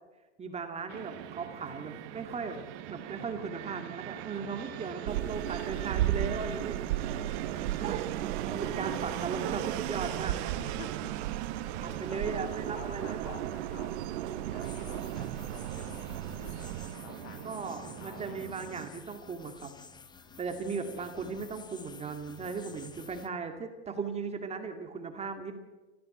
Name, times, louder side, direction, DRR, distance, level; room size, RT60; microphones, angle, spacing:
voice 1, 0.4-2.6 2.9-6.8 7.8-8.0 8.5-10.4 11.8-13.3 17.4-19.7 20.4-25.6, right 5 dB, 20° right, 6 dB, 2.3 m, -37 dB
Fixed-wing aircraft airplane, 0.9-18.9, right 13 dB, 50° right, 1.8 m, -40 dB
voice 2, 4.4-5.5 7.0-9.1 10.5-11.2 11.5-12.5 12.8-16.6 17.0-18.4 20.2-20.9 22.6-23.2, left 6 dB, 40° left, 6 dB, 3.6 m, -51 dB
sound 1, 5.1-16.9, right 13 dB, 75° right, 1.3 m, -36 dB
sound 2, 14.6-23.3, left 5 dB, 10° left, 1.1 m, -51 dB
29.0 x 15.0 x 8.0 m, 1.2 s
supercardioid pair, 140°, 34 cm